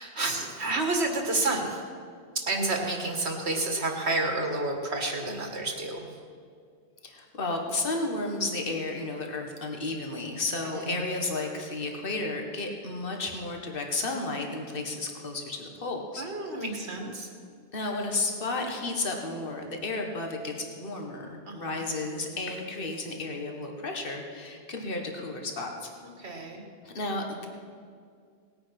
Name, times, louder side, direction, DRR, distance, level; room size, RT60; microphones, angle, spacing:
voice 1, 0.0-1.8 2.5-6.1 10.6-10.9 16.2-17.3 21.5-21.7 26.2-26.6, right 2 dB, 85° right, 2 dB, 2.0 m, -30 dB
voice 2, 7.0-16.3 16.6-16.8 17.7-25.9 26.8-27.5, left 2 dB, 60° left, 2 dB, 1.7 m, -33 dB
18.5 x 8.8 x 5.9 m, 2.2 s
omnidirectional pair, 1.1 m